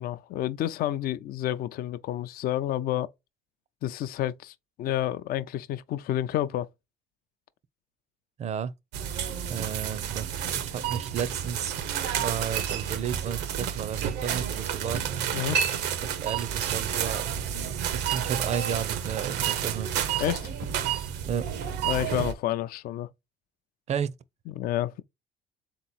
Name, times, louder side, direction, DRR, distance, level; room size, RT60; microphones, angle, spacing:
voice 1, 0.0-3.1 3.8-6.7 15.3-15.6 20.2-20.5 21.8-23.1 24.5-25.0, left 12 dB, 60° left, 0.4 m, -30 dB
voice 2, 8.4-8.7 9.5-10.3 10.6-11.9 12.1-15.0 16.2-20.1 21.3-21.5 23.9-24.2, right 8 dB, 40° right, 0.5 m, -33 dB
sound 1, 8.9-22.3, right 9 dB, 85° right, 0.7 m, -30 dB
3.7 x 3.0 x 4.0 m
cardioid pair, 110°, 17 cm